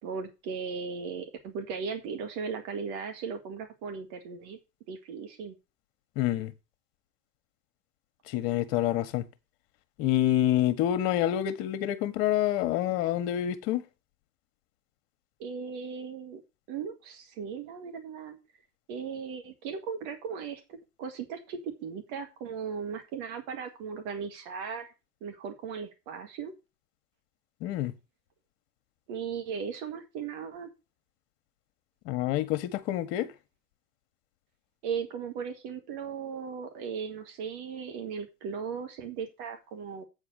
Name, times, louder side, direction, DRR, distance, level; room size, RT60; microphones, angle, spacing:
voice 1, 0.0-4.6 4.9-5.5 15.4-16.4 16.7-18.4 18.9-24.9 25.2-26.5 29.1-30.7 34.8-40.0, right 6 dB, 55° right, 2.0 m, -37 dB
voice 2, 6.2-6.5 8.3-9.2 10.0-13.8 27.6-27.9 32.0-33.3, left 12 dB, 55° left, 1.4 m, -27 dB
8.2 x 4.9 x 6.8 m
hypercardioid pair, 80°, 47 cm